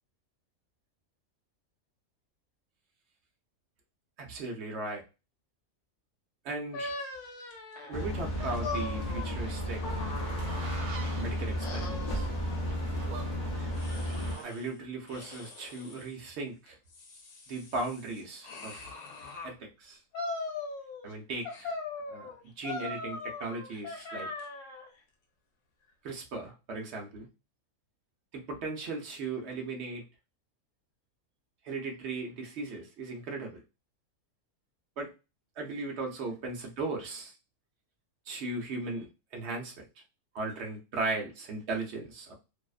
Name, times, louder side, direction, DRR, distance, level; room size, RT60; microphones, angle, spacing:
voice 1, 4.2-5.0 6.4-6.9 7.9-10.0 11.2-12.3 14.4-16.8 17.5-18.9 19.4-20.0 21.0-21.7 22.1-22.3 22.6-24.3 26.0-27.3 28.3-30.0 31.6-33.6 35.0-35.1 35.6-37.3 38.3-39.7 40.3-42.3, right 3 dB, 60° right, 1 dB, 0.8 m, -37 dB
sound 1, 6.7-11.2 11.6-13.1 13.8-14.7 15.1-16.1 16.7-19.5 20.1-21.1 21.4-24.9, left 3 dB, 80° left, 1.1 m, -41 dB
sound 2, 7.9-14.4, equal, 60° left, 0.5 m, -33 dB
sound 3, 8.4-14.4, right 5 dB, 85° right, 1.1 m, -46 dB
2.7 x 2.0 x 2.3 m, 0.29 s
omnidirectional pair, 1.6 m